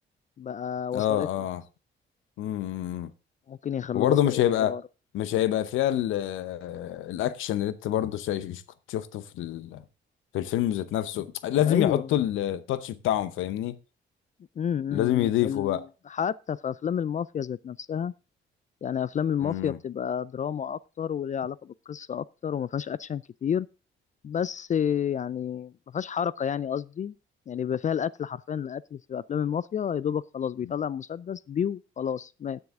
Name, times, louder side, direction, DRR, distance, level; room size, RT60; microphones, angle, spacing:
voice 1, 0.4-1.3 3.5-4.8 11.6-12.1 14.6-18.1 18.8-23.7 24.2-27.1 27.5-32.6, left 8 dB, 40° left, 0.4 m, -30 dB
voice 2, 0.9-1.6 2.4-3.1 3.9-4.8 5.1-8.6 8.9-9.8 10.3-13.7 14.9-15.8 19.4-19.8, left 12 dB, 85° left, 0.8 m, -27 dB
9.6 x 9.6 x 3.6 m
cardioid pair, 90°, 20 cm